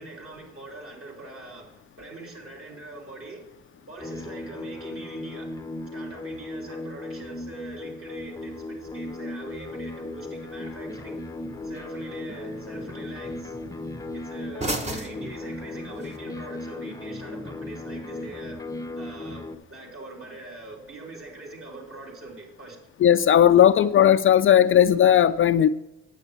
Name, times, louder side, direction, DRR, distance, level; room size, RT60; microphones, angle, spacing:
voice 1, 0.0-3.4 3.9-5.7 5.9-11.2 11.6-13.6 14.2-18.6 19.0-22.8, right 2 dB, 45° right, 3.1 m, -43 dB
sound 1, 4.0-19.6, left 2 dB, 10° left, 0.6 m, -36 dB
sound 2, 8.2-16.2, right 2 dB, 20° right, 1.2 m, -40 dB
voice 2, 23.0-25.7, left 10 dB, 45° left, 0.4 m, -17 dB
9.2 x 7.8 x 4.3 m
cardioid pair, 90°, 30 cm